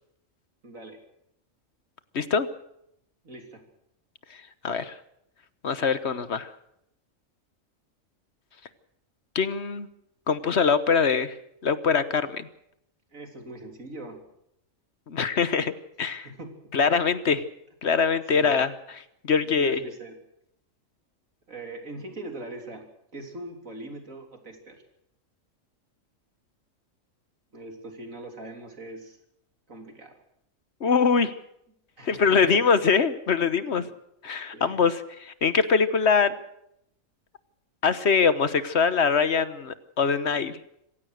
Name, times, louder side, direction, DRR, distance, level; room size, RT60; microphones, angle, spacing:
voice 1, 0.6-1.0 3.2-3.6 13.1-14.2 16.2-16.7 18.3-18.6 19.4-20.2 21.5-22.8 23.1-24.8 27.5-29.2 29.7-30.1 32.0-32.5 33.8-33.9 34.5-34.9, right 2 dB, 80° right, 4 dB, 3.8 m, -41 dB
voice 2, 2.1-2.5 4.6-4.9 5.6-6.5 9.3-9.9 10.3-11.3 11.6-12.5 15.1-15.7 16.0-16.3 16.7-17.4 17.8-19.8 30.8-31.3 32.1-33.8 34.2-36.3 37.8-40.6, left 5 dB, 55° left, 14 dB, 1.3 m, -23 dB
26.0 x 16.0 x 6.5 m, 0.76 s
omnidirectional pair, 1.4 m